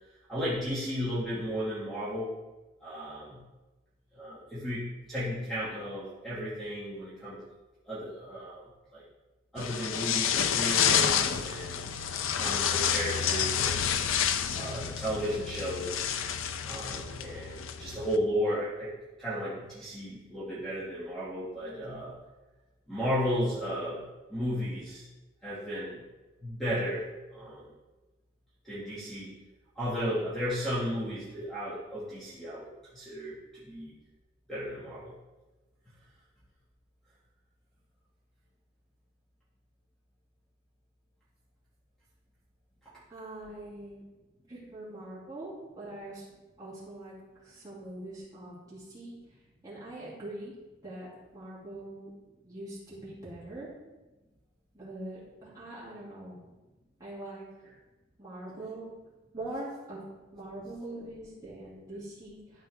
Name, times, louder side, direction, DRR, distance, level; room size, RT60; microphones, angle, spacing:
voice 1, 0.3-2.3 2.8-3.4 4.1-7.4 7.9-9.0 9.5-11.8 12.3-14.0 14.5-16.0 16.6-22.1 22.9-24.0 24.3-25.1 25.4-26.0 26.4-27.7 28.6-29.3 29.8-33.9 34.5-35.1, equal, ahead, -11 dB, 2.0 m, -34 dB
sound 1, 9.6-18.2, left 8 dB, 85° left, 0.5 m, -29 dB
voice 2, 43.1-44.0 44.5-46.3 46.6-47.1 47.4-49.2 49.6-50.5 50.8-52.1 52.4-53.7 54.7-56.4 57.0-57.8 58.2-58.9 59.3-60.0 60.3-62.7, right 1 dB, 20° right, -9 dB, 2.9 m, -43 dB
12.0 x 4.4 x 3.6 m, 1.1 s
head